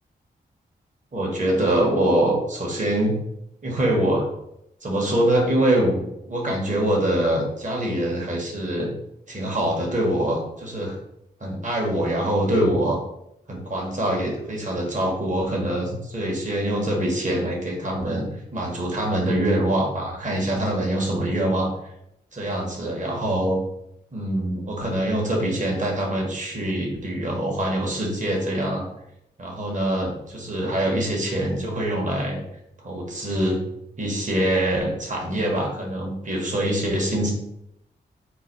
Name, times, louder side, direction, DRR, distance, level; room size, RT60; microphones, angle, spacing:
voice 1, 1.1-3.2 3.6-4.3 4.8-8.9 9.3-11.0 11.4-13.0 13.5-21.7 22.3-23.6 24.1-28.9 29.4-32.4 32.8-33.6 34.0-37.3, right 1 dB, 40° right, -1 dB, 1.5 m, -24 dB
3.9 x 2.6 x 4.5 m, 0.79 s
cardioid pair, 45°, 19 cm